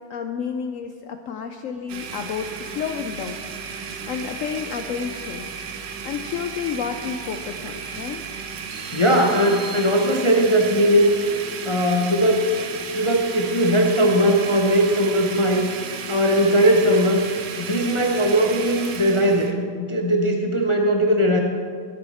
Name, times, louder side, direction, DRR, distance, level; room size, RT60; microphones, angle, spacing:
voice 1, 0.1-3.5 4.1-5.5 6.0-8.2, left 7 dB, 90° left, 7 dB, 0.7 m, -30 dB
Domestic sounds home sounds, 1.9-19.5, right 6 dB, 85° right, 1.6 m, -34 dB
sound 1, 8.7-10.6, right 3 dB, 60° right, 3.5 m, -43 dB
voice 2, 8.9-11.1 11.6-12.5 12.9-15.7 16.1-17.2 17.6-21.4, equal, 40° left, 1 dB, 0.4 m, -19 dB
17.0 x 7.9 x 4.2 m, 2.2 s
omnidirectional pair, 1.9 m